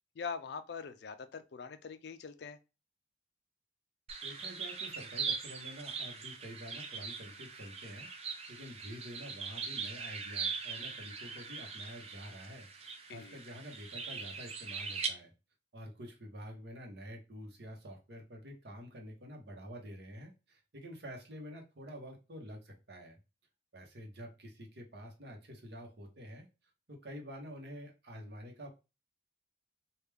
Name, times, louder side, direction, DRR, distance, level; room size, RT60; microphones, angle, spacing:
voice 1, 0.2-2.6 13.1-13.4, left 5 dB, 65° left, 0.4 m, -43 dB
sound 1, 4.1-15.1, right 5 dB, 35° right, 0.4 m, -41 dB
voice 2, 4.2-15.3 15.7-23.2 23.7-26.5 26.9-28.7, equal, 60° right, 0.9 m, -48 dB
3.3 x 2.4 x 3.3 m
head